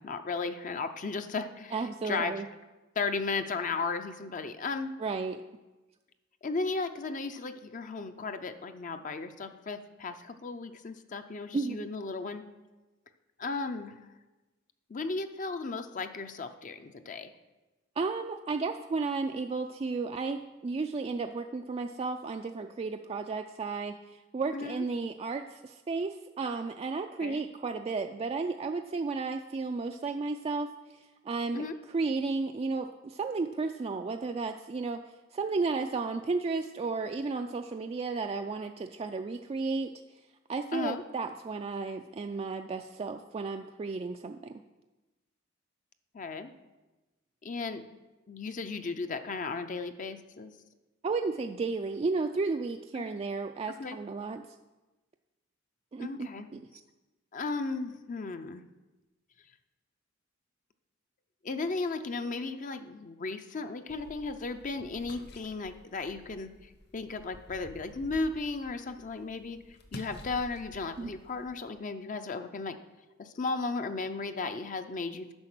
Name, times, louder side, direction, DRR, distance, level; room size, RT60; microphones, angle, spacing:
voice 1, 0.0-1.8 2.0-2.4 3.0-4.9 6.4-12.4 13.4-14.0 14.9-17.3 24.5-24.9 27.2-27.4 31.5-31.8 40.7-41.0 46.1-46.5 47.4-47.8 48.3-50.5 52.9-53.1 53.8-54.0 56.0-56.5 57.3-58.7 61.4-69.6 69.9-72.8 73.2-75.3, left 3 dB, 40° left, 8 dB, 0.5 m, -35 dB
voice 2, 1.7-2.5 5.0-5.4 11.5-11.9 18.0-35.0 35.3-39.9 40.5-44.6 51.0-54.4 55.9-56.8 71.0-71.1, right 4 dB, 30° right, 5 dB, 0.3 m, -33 dB
sound 1, 63.9-71.7, left 1 dB, 55° left, 1.2 m, -51 dB
9.6 x 5.8 x 6.1 m, 1.1 s
head